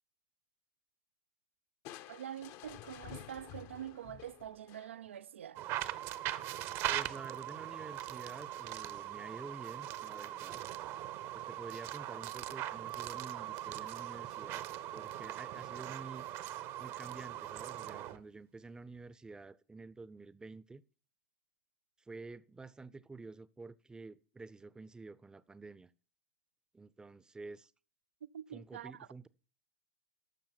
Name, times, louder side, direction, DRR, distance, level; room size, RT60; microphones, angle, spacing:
Crushing, 1.8-5.2, left 12 dB, 50° left, 0.8 m, -51 dB
voice 1, 2.1-5.6 28.2-28.9, right 10 dB, 75° right, 0.4 m, -45 dB
sound 1, 5.6-18.2, right 13 dB, 50° right, 0.8 m, -40 dB
voice 2, 6.9-10.7 11.3-14.7 14.9-16.3 16.8-20.8 22.1-25.9 26.7-27.7 28.5-29.3, right 3 dB, 10° right, 0.6 m, -49 dB
12.0 x 6.9 x 5.7 m
hypercardioid pair, 90°, 7 cm